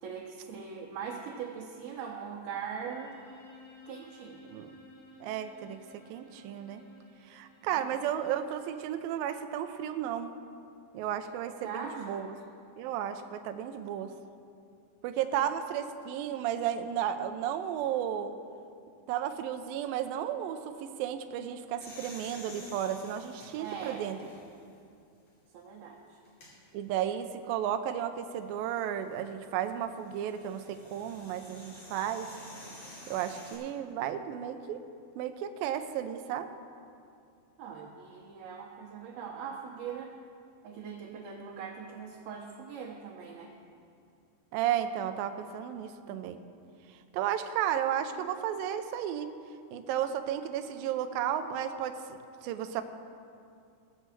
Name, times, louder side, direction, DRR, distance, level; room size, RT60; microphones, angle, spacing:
voice 1, 0.0-3.1 3.9-4.4 7.6-7.8 11.6-12.2 15.4-15.5 23.6-24.1 25.5-26.2 37.6-40.2 40.6-43.5, right 6 dB, 70° right, -5 dB, 2.9 m, -41 dB
Bowed string instrument, 2.8-8.6, left 1 dB, 80° left, 4.9 m, -55 dB
voice 2, 5.2-5.8 6.1-6.8 7.3-10.3 10.9-12.3 12.8-14.1 15.0-18.4 19.1-24.2 26.7-32.3 33.1-34.8 35.2-36.5 44.5-46.4 47.1-49.3 49.7-52.8, right 10 dB, 90° right, 7 dB, 2.0 m, -33 dB
sound 1, 21.8-24.7 25.3-25.4 26.2-26.5 28.7-33.5, left 1 dB, 40° left, 3.7 m, -50 dB
17.0 x 6.3 x 7.6 m, 2.4 s
omnidirectional pair, 4.9 m